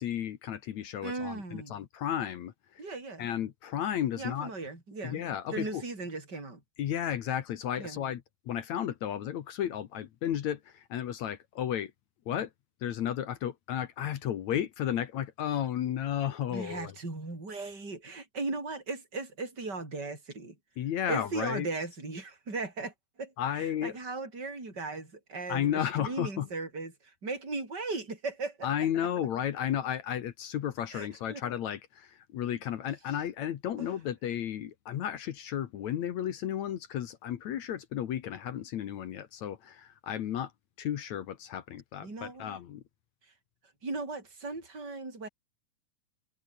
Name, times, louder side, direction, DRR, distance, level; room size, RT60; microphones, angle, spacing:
voice 1, 0.0-2.5 3.2-4.5 5.0-5.8 6.8-11.9 12.3-12.5 12.8-16.9 20.8-21.7 23.4-23.9 25.5-26.5 28.6-40.5 40.8-42.8, left 10 dB, 60° left, 2.0 m, -33 dB
voice 2, 1.0-1.7 2.8-3.3 4.2-5.2 5.5-6.6 7.8-8.0 16.5-20.6 21.1-28.7 30.9-31.4 33.8-33.9 42.0-42.6 43.8-45.3, right 3 dB, 25° right, 7.6 m, -37 dB
omnidirectional pair, 4.5 m